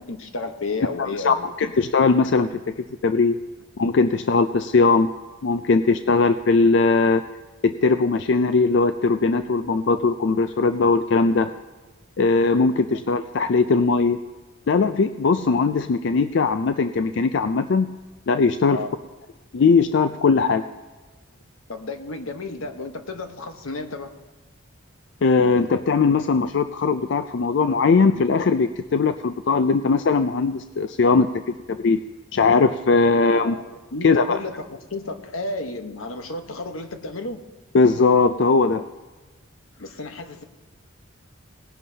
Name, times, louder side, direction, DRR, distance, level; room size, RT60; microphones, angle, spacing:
voice 1, 0.0-1.7 18.7-18.9 21.7-24.1 33.1-33.6 33.9-37.4 39.8-40.4, left 2 dB, 85° left, 7 dB, 1.1 m, -32 dB
voice 2, 1.0-3.4 3.8-5.1 5.4-7.2 7.6-11.5 12.2-14.2 14.7-17.9 18.3-18.8 19.5-20.6 25.2-32.0 32.3-33.6 34.0-34.4 37.7-38.9, left 4 dB, 60° left, 9 dB, 0.4 m, -20 dB
19.5 x 10.5 x 2.8 m, 1.2 s
head